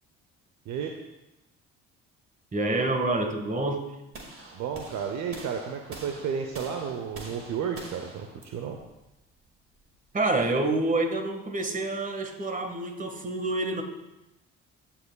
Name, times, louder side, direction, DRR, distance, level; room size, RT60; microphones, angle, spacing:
voice 1, 2.5-3.8 10.1-13.8, right 2 dB, 25° right, 5 dB, 1.6 m, -27 dB
sound 1, 4.1-10.2, right 2 dB, 40° right, 2.1 m, -46 dB
voice 2, 4.5-8.8, right 7 dB, 60° right, 4 dB, 0.8 m, -32 dB
16.5 x 5.8 x 2.3 m, 0.94 s
hypercardioid pair, 55°, 33 cm